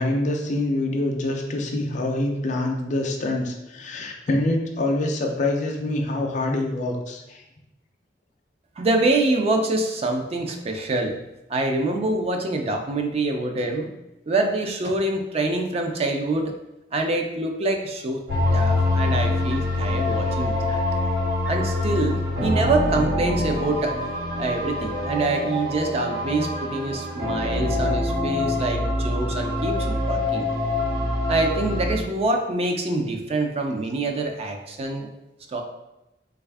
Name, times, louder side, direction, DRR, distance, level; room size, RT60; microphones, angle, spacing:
voice 1, 0.0-7.4, left 2 dB, 45° left, 2 dB, 0.4 m, -25 dB
voice 2, 8.8-11.1 11.5-13.9 14.3-16.6 16.9-18.2 18.5-20.8 21.5-24.0 24.4-30.5 31.3-35.1 35.5-35.6, right 2 dB, 35° right, 4 dB, 0.4 m, -25 dB
sound 1, 18.3-32.0, left 1 dB, 65° right, 1.1 m, -25 dB
3.3 x 2.3 x 3.3 m, 0.93 s
head